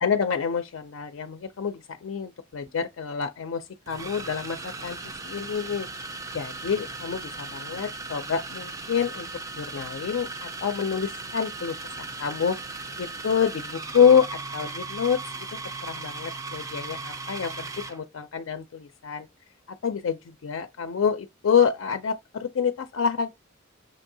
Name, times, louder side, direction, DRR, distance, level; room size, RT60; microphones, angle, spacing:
voice 1, 0.0-5.0 5.2-5.9 6.3-9.3 9.6-12.6 13.0-15.5 15.8-19.3 19.8-23.3, left 7 dB, 85° left, 0.4 m, -27 dB
sound 1, 2.5-2.7 3.9-18.0, right 3 dB, 15° right, 0.3 m, -37 dB
6.2 x 2.6 x 2.7 m
head